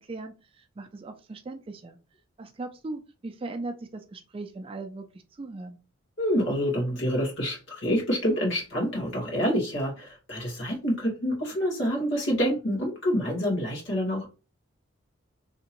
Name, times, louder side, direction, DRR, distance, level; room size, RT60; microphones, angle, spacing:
voice 1, 0.0-2.0 2.4-5.8, right 2 dB, 25° right, 6 dB, 0.3 m, -39 dB
voice 2, 6.2-14.3, equal, 65° left, -3 dB, 2.0 m, -27 dB
3.5 x 2.9 x 2.9 m, 0.31 s
head